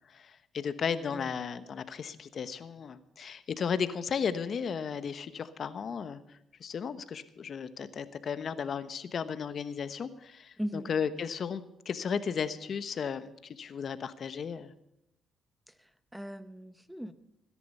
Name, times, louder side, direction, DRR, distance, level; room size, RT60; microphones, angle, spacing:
voice 1, 0.1-6.2 6.6-14.7, left 6 dB, 55° left, 13 dB, 1.0 m, -35 dB
voice 2, 10.6-10.9 15.7-17.1, equal, 5° right, 13 dB, 1.0 m, -39 dB
17.5 x 10.5 x 5.5 m, 0.81 s
cardioid pair, 90°, 0 cm